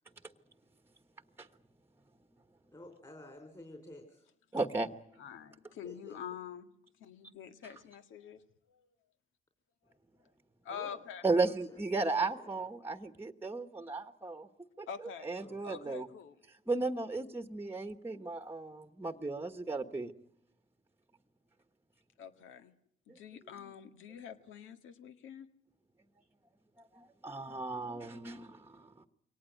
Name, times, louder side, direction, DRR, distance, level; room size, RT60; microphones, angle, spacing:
voice 1, 2.7-4.3 5.8-6.2 7.7-7.9 10.7-11.0 11.7-12.5 15.4-15.9, left 1 dB, 20° left, 4 dB, 4.2 m, -52 dB
voice 2, 4.5-4.9 11.2-14.5 14.8-14.9 15.2-16.1 16.7-20.1 23.1-23.2 23.6-23.7 24.2-24.3 26.8-29.1, right 3 dB, 10° right, 9 dB, 1.3 m, -35 dB
voice 3, 5.2-6.7 7.0-8.4 8.7-8.9 10.6-11.2 14.9-15.3 15.6-16.4 22.2-22.7 23.1-25.5, left 8 dB, 80° left, 9 dB, 1.8 m, -46 dB
23.5 x 18.5 x 9.1 m, 0.72 s
cardioid pair, 90°, 20 cm